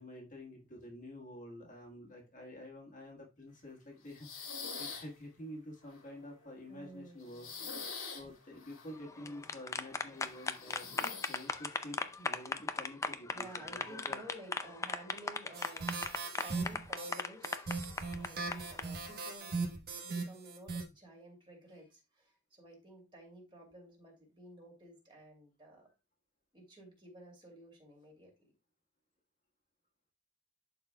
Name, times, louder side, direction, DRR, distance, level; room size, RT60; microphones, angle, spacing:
voice 1, 0.0-7.5 8.1-10.9 11.3-14.2 15.5-15.6, left 1 dB, 40° left, 0 dB, 1.4 m, -49 dB
sound 1, 4.1-5.1 5.9-6.9 7.2-8.9 10.3-11.6, left 5 dB, 80° left, 1.9 m, -45 dB
voice 2, 6.7-7.7 9.1-9.5 11.8-12.0 13.3-15.9 16.4-17.7 18.1-25.9 26.5-28.3, right 1 dB, 25° right, 0 dB, 2.5 m, -53 dB
sound 2, 9.1-18.8, left 3 dB, 15° left, 0.4 m, -37 dB
sound 3, 15.5-20.8, right 4 dB, 50° right, 1.2 m, -39 dB
11.5 x 4.2 x 2.2 m, 0.27 s
head